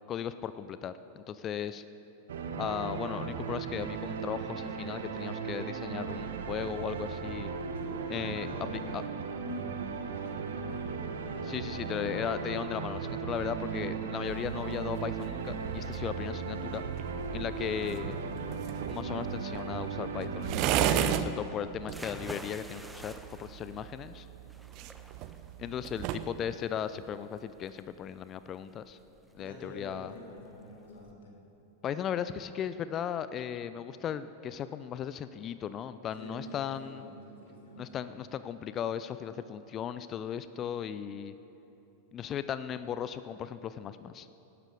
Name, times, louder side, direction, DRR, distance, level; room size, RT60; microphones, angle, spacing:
voice 1, 0.1-1.8 2.6-7.5 8.1-8.5 8.9-9.0 11.4-16.8 17.3-18.2 18.9-23.1 23.4-24.3 25.6-29.0 29.4-30.1 31.8-37.0 37.8-41.3 42.1-44.3, left 9 dB, 30° left, 13 dB, 0.4 m, -36 dB
sound 1, 2.3-20.7, right 5 dB, 60° right, 1.0 m, -37 dB
voice 2, 7.7-9.1 9.4-12.1 25.6-25.9 29.3-31.3 36.2-37.9, left 1 dB, 60° left, -2 dB, 3.1 m, -47 dB
sound 2, 14.2-26.3, right 11 dB, 40° right, 0.6 m, -36 dB
sound 3, 21.8-31.1, right 1 dB, 5° right, 0.8 m, -50 dB
18.0 x 12.0 x 5.0 m, 3.0 s
figure-of-eight pair, 90°, 0 cm